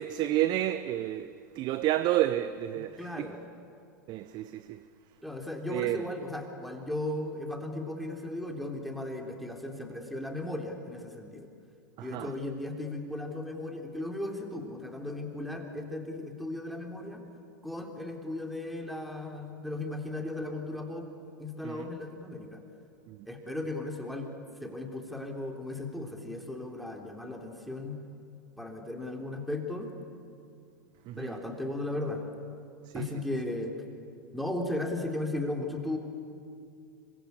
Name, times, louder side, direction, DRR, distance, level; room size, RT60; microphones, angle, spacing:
voice 1, 0.0-3.3 4.1-4.8 5.7-6.0 12.0-12.3 21.6-21.9 23.1-23.2 31.1-31.4 32.9-33.1, right 13 dB, 40° right, 0.9 m, -30 dB
voice 2, 3.0-3.4 5.2-11.5 12.0-17.2 17.6-21.1 21.4-22.6 23.3-24.3 24.6-28.0 28.6-29.9 31.2-32.3 32.9-33.7 34.3-36.0, left 2 dB, ahead, 3.5 m, -36 dB
26.5 x 24.0 x 8.4 m
hypercardioid pair, 105°, 11 cm